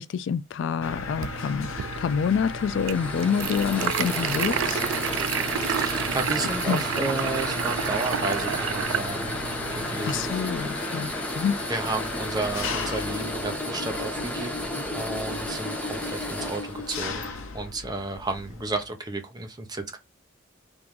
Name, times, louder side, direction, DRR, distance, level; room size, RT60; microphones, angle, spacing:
voice 1, 0.0-4.8 6.6-6.8 10.0-11.6, left 7 dB, 65° left, 0.3 m, -27 dB
Mechanisms, 0.8-18.9, left 4 dB, 85° left, 0.7 m, -37 dB
sound 1, 0.8-10.3, right 9 dB, 70° right, 0.3 m, -31 dB
sound 2, 1.8-17.3, equal, 5° left, 0.8 m, -33 dB
voice 2, 5.7-9.4 9.7-10.7 11.7-20.0, right 2 dB, 20° right, 0.6 m, -32 dB
3.6 x 2.5 x 4.6 m
head